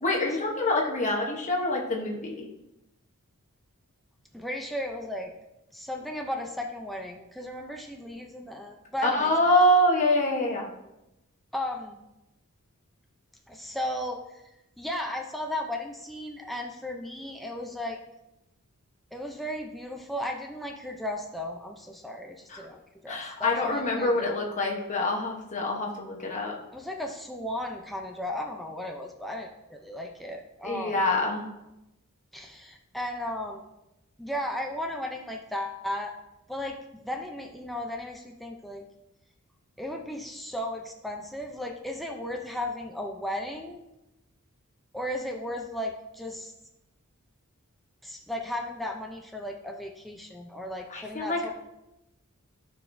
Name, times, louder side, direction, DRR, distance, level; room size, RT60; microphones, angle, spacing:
voice 1, 0.0-2.5 9.0-10.7 22.5-22.7 23.1-26.5 30.6-31.5 50.9-51.5, left 1 dB, 35° left, -1 dB, 1.0 m, -25 dB
voice 2, 4.3-5.4 5.7-9.3 11.5-12.0 13.5-14.4 14.8-18.0 19.1-24.4 26.7-31.0 32.3-33.6 34.2-36.1 36.5-36.8 37.0-38.8 39.8-43.8 44.9-46.5 48.0-51.5, left 1 dB, ahead, 0 dB, 0.5 m, -35 dB
12.0 x 4.8 x 2.6 m, 0.92 s
head